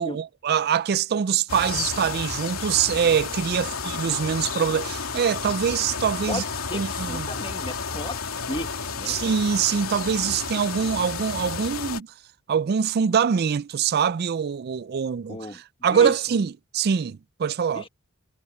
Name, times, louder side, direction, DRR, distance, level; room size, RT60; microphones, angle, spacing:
voice 1, 0.0-6.4 6.7-7.3 9.1-12.1 12.5-15.4 15.8-17.8, right 7 dB, 50° right, 0.4 m, -24 dB
sound 1, 1.5-12.0, left 5 dB, 85° left, 3.0 m, -31 dB
voice 2, 6.3-9.2 15.3-15.6 15.9-16.1 17.7-17.9, left 2 dB, 25° left, 1.7 m, -35 dB
head